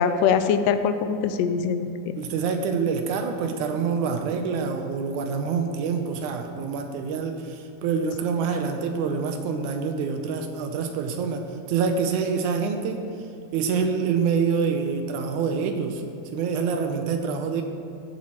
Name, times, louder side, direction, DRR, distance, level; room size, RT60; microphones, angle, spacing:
voice 1, 0.0-2.2, left 7 dB, 90° left, 10 dB, 2.1 m, -23 dB
voice 2, 2.2-13.0 13.5-16.0 16.3-17.6, right 5 dB, 80° right, 5 dB, 2.0 m, -26 dB
14.5 x 7.3 x 3.0 m, 2.6 s
omnidirectional pair, 3.7 m